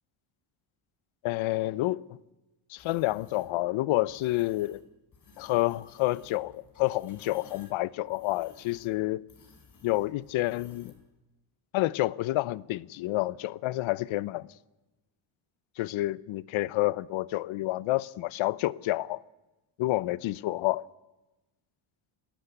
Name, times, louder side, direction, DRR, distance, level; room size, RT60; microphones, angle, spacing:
voice 1, 1.2-2.0 2.7-4.8 5.4-9.2 9.8-10.9 11.7-14.5 15.8-19.2 19.8-20.9, left 17 dB, 70° left, 0.8 m, -29 dB
sound 1, 2.8-3.5 4.1-4.8 5.1-11.0, left 4 dB, 35° left, 4.8 m, -56 dB
30.0 x 12.5 x 8.2 m
cardioid pair, 135°, 50 cm